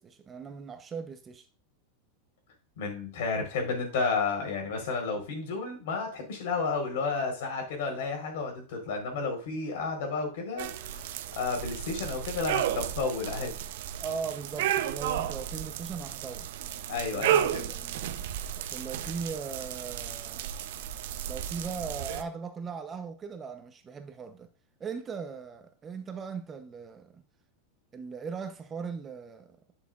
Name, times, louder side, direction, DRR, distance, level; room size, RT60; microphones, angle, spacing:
voice 1, 0.0-1.4 14.0-16.5 17.1-18.0 18.6-20.5 21.3-24.5 24.8-27.2 27.9-29.6, right 5 dB, 20° right, 0.9 m, -39 dB
voice 2, 2.8-13.7 16.9-17.7, left 4 dB, 75° left, 4.2 m, -32 dB
sound 1, 10.6-22.2, right 10 dB, 70° right, 0.8 m, -33 dB
11.5 x 6.6 x 2.5 m
supercardioid pair, 135°, 0 cm